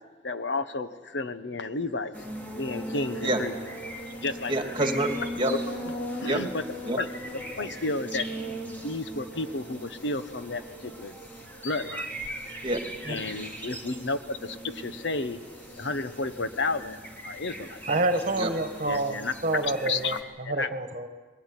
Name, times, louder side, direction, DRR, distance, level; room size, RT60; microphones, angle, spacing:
voice 1, 0.2-2.1 2.5-3.5 4.2-4.7 5.5-5.6 6.2-6.6 7.0-7.1 7.3-8.3 8.8-11.1 11.6-12.1 13.1-15.4 15.8-17.8 18.9-19.3 19.6-20.2 20.4-20.7, left 3 dB, 75° left, 10 dB, 1.1 m, -32 dB
sound 1, 2.1-20.2, right 1 dB, 10° left, 2.8 m, -39 dB
voice 2, 4.5-5.5 6.2-6.4 6.9-7.0 12.6-13.2 18.4-18.5, right 1 dB, 30° right, 4 dB, 2.4 m, -27 dB
voice 3, 17.9-19.2 19.4-21.1, right 2 dB, 45° right, 7 dB, 1.6 m, -28 dB
21.5 x 16.0 x 9.9 m, 1.4 s
head